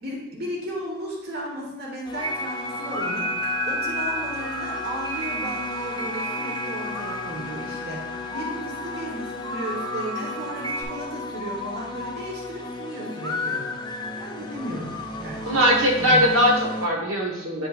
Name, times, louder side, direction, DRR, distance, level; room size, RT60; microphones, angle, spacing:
voice 1, 0.0-3.3 3.7-13.7 14.2-15.6 16.0-16.3, right 1 dB, 50° right, -2 dB, 1.3 m, -34 dB
sound 1, 2.0-16.9, left 3 dB, 20° left, 0.5 m, -33 dB
sound 2, 2.2-10.8, right 2 dB, 25° right, 1.7 m, -33 dB
voice 2, 15.4-17.7, equal, 85° right, 0 dB, 1.4 m, -20 dB
9.2 x 5.5 x 2.5 m, 0.99 s
head